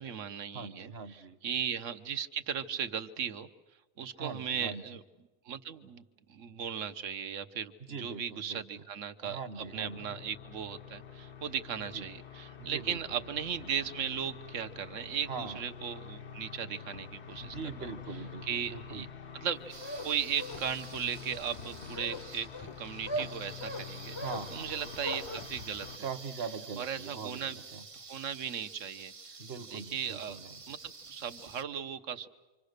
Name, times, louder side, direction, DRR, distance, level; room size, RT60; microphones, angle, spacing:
voice 1, 0.0-3.5 4.0-5.0 5.4-6.0 6.3-7.7 8.0-17.6 18.4-19.1 19.3-19.7 20.0-24.2 24.5-25.9 26.8-27.6 27.9-29.3 29.7-30.4 30.7-32.3, right 8 dB, 70° right, 9 dB, 1.4 m, -37 dB
voice 2, 0.5-1.4 4.2-5.0 7.8-8.9 9.2-10.2 11.9-12.1 12.6-13.2 15.3-15.6 17.4-19.1 24.2-24.9 26.0-27.8 29.4-30.6, right 5 dB, 50° right, 12 dB, 1.3 m, -42 dB
sound 1, 9.5-26.0, left 7 dB, 60° left, 1.2 m, -47 dB
sound 2, 19.5-25.5, equal, 25° left, 0.8 m, -40 dB
sound 3, 19.7-31.6, right 4 dB, 30° right, 0.8 m, -49 dB
27.5 x 25.5 x 6.7 m, 1.2 s
omnidirectional pair, 1.4 m